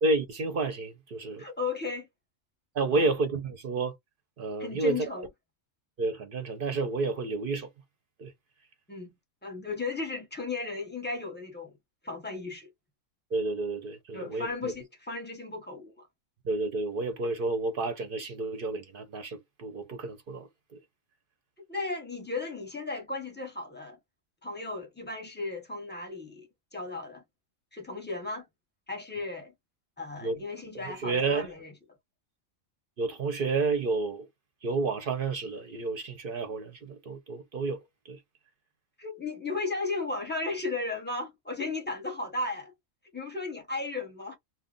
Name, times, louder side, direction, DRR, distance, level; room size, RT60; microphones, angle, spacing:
voice 1, 0.0-1.4 2.7-3.9 4.4-5.3 6.0-7.7 8.2-8.3 13.3-14.7 16.4-20.8 30.2-30.4 30.7-31.5 33.0-34.3 34.6-38.2, right 3 dB, 55° right, 0.7 m, -30 dB
voice 2, 1.4-2.1 2.9-3.1 4.6-5.3 8.9-9.1 9.4-11.8 12.0-12.7 14.1-16.1 21.7-24.0 24.4-27.2 27.7-28.4 28.9-29.5 30.0-31.7 39.0-42.7 43.1-44.4, left 3 dB, 10° left, 0.7 m, -35 dB
2.3 x 2.0 x 3.7 m
omnidirectional pair, 1.3 m